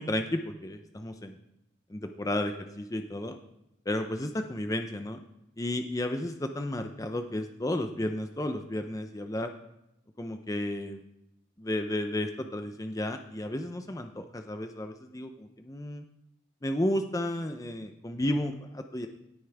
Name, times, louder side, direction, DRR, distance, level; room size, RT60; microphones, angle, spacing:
voice 1, 0.0-1.4 1.9-3.4 3.9-5.2 5.6-9.5 10.2-11.0 11.6-16.0 16.6-19.1, left 1 dB, 15° left, 6 dB, 0.6 m, -32 dB
17.5 x 8.3 x 3.5 m, 0.86 s
head